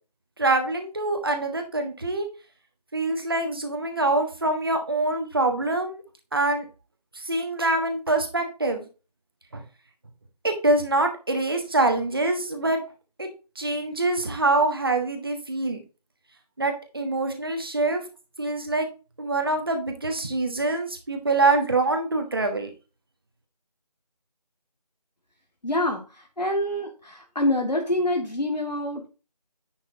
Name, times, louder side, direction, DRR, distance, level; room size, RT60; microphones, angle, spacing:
voice 1, 0.4-2.3 2.9-6.0 6.3-6.7 7.1-8.9 9.5-9.6 10.4-12.8 13.2-13.3 13.5-15.8 16.6-18.0 18.4-18.9 19.2-22.7, right 2 dB, 35° right, 5 dB, 1.4 m, -25 dB
voice 2, 25.6-29.1, left 1 dB, 85° left, 2 dB, 2.1 m, -26 dB
10.5 x 6.3 x 2.8 m, 0.32 s
figure-of-eight pair, 170°, 21 cm